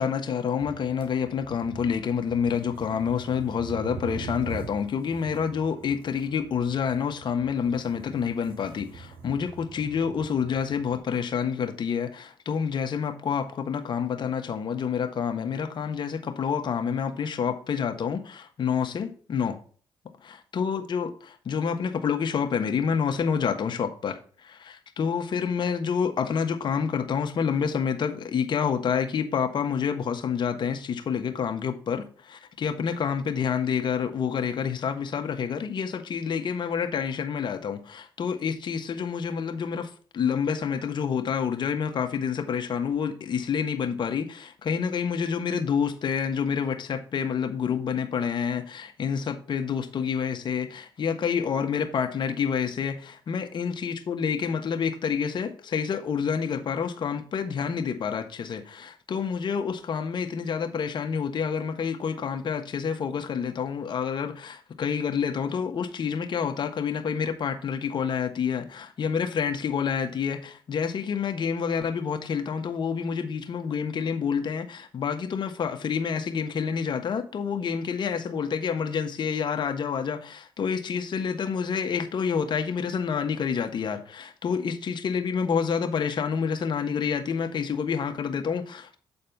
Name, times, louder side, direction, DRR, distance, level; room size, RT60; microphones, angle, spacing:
voice 1, 0.0-19.6 20.2-89.0, left 6 dB, 55° left, 1.3 m, -28 dB
sound 1, 0.6-11.0, right 5 dB, 80° right, 2.6 m, -43 dB
8.2 x 4.2 x 5.3 m
cardioid pair, 70°, 9 cm